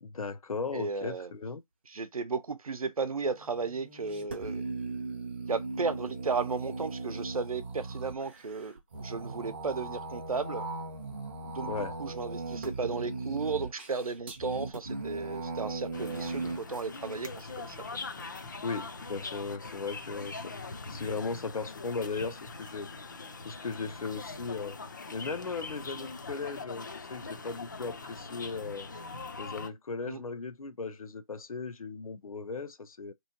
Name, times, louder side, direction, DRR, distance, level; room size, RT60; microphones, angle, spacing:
voice 1, 0.0-1.6 11.6-12.0 18.6-22.9 23.4-24.8 25.1-28.9 29.4-33.1, left 4 dB, 80° left, 0.6 m, -37 dB
voice 2, 0.7-1.3 1.9-4.6 5.5-8.7 9.0-10.7 11.4-17.8 30.1-30.2, right 4 dB, 80° right, 0.7 m, -34 dB
sound 1, 3.3-16.6, right 3 dB, 20° right, 0.5 m, -38 dB
sound 2, 15.9-29.7, left 3 dB, 35° left, 0.4 m, -42 dB
3.5 x 3.0 x 2.7 m
figure-of-eight pair, 165°, 18 cm